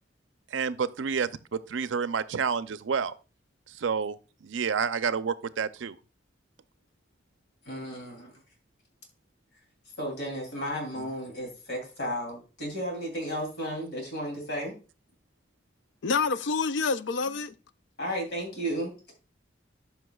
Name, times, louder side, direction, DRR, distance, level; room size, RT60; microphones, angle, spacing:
voice 1, 0.5-3.1 3.7-4.2 4.4-6.0 11.0-11.1, right 6 dB, 85° right, 0.5 m, -29 dB
voice 2, 7.6-8.3 10.0-14.7 18.0-19.1, equal, 60° left, 2.9 m, -33 dB
voice 3, 16.0-17.5, left 4 dB, 80° left, 0.5 m, -27 dB
12.5 x 5.7 x 2.3 m
head